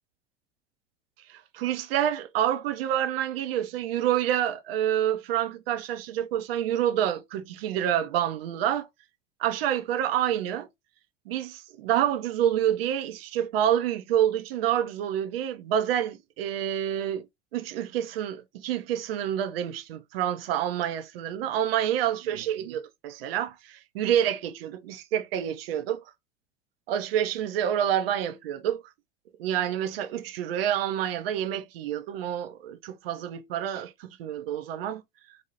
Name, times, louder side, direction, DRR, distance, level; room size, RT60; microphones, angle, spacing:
voice 1, 1.3-8.9 9.4-10.7 11.3-17.3 17.5-26.0 26.9-28.8 29.4-35.0, right 10 dB, 60° right, 0.5 m, -28 dB
2.6 x 2.0 x 2.7 m
figure-of-eight pair, 80°, 34 cm